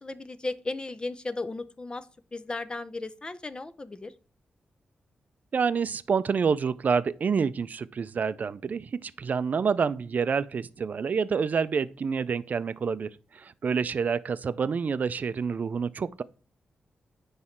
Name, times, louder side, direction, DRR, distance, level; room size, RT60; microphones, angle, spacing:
voice 1, 0.0-2.1 2.3-4.1, left 2 dB, 25° left, 0.5 m, -35 dB
voice 2, 5.5-13.1 13.4-16.2, right 6 dB, 50° right, 0.4 m, -28 dB
9.5 x 3.2 x 4.3 m
wide cardioid pair, 110°, 4 cm